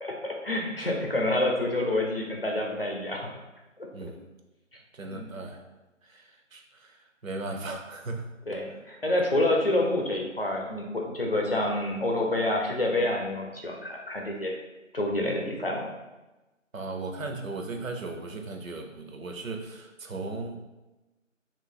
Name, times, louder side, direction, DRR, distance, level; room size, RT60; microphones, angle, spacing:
voice 1, 0.0-3.3 4.0-4.1 5.1-5.3 8.5-14.5 14.9-15.9, left 1 dB, 45° left, 0 dB, 0.6 m, -28 dB
voice 2, 4.9-5.6 6.0-8.2 16.7-20.6, right 3 dB, 85° right, 4 dB, 0.7 m, -37 dB
2.7 x 2.5 x 3.7 m, 1.1 s
figure-of-eight pair, 170°, 39 cm